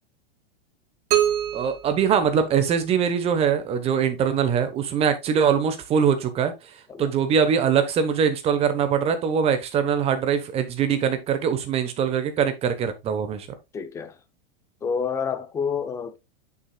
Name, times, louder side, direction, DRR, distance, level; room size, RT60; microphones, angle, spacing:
sound 1, 1.1-3.0, right 11 dB, 50° right, 2.5 m, -26 dB
voice 1, 1.5-6.5 7.0-13.5, right 7 dB, 20° right, 1.0 m, -22 dB
voice 2, 13.7-14.2 14.8-16.2, left 6 dB, 10° left, 0.5 m, -28 dB
8.6 x 6.6 x 2.3 m
supercardioid pair, 165°, 30 cm